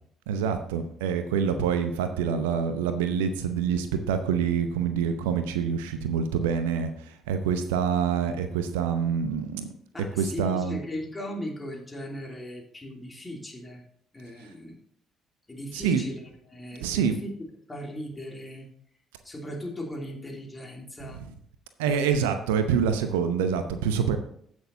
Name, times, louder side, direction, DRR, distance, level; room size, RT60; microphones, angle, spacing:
voice 1, 0.3-6.9 7.3-9.7 10.2-10.8 15.7-16.0 16.8-17.2 21.0-21.3 21.8-24.2, right 7 dB, 75° right, 9 dB, 0.7 m, -26 dB
voice 2, 9.9-13.8 14.1-14.8 15.5-17.3 17.7-18.7 19.2-21.2 21.9-22.3, equal, 20° left, 1 dB, 2.8 m, -38 dB
15.5 x 6.3 x 2.7 m, 0.67 s
figure-of-eight pair, 45°, 0 cm